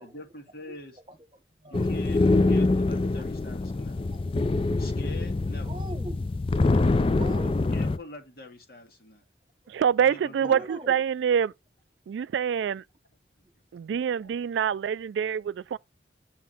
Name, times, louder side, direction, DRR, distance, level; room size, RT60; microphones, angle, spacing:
voice 1, 0.0-1.0 1.7-4.0 4.7-5.8 7.7-9.2 10.0-10.7 13.4-13.5 13.9-14.3, left 1 dB, 55° left, 2.0 m, -45 dB
voice 2, 1.1-1.9 4.1-4.2 5.6-6.5 7.2-7.8 9.6-9.7 10.4-11.0, right 1 dB, 25° right, 1.3 m, -42 dB
sound 1, 1.7-8.0, left 2 dB, 30° left, 0.4 m, -25 dB
voice 3, 9.7-11.5 12.1-12.8 13.7-15.8, right 8 dB, 85° right, 0.3 m, -26 dB
7.3 x 3.8 x 4.2 m
head